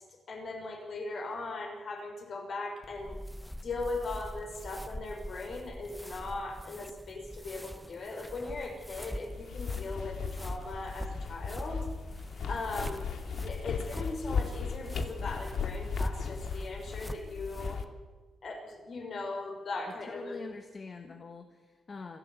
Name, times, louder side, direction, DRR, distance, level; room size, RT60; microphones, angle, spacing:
voice 1, 0.3-3.2 3.6-11.9 12.5-13.1 13.4-17.8 18.4-20.4, left 3 dB, 50° left, 2 dB, 5.7 m, -39 dB
sound 1, 2.8-17.9, equal, ahead, 0.7 m, -43 dB
sound 2, 9.3-17.8, left 5 dB, 75° left, 2.3 m, -37 dB
voice 2, 20.1-22.2, left 4 dB, 35° left, 6 dB, 1.4 m, -44 dB
28.0 x 12.0 x 8.3 m, 1.3 s
wide cardioid pair, 155°, 0 cm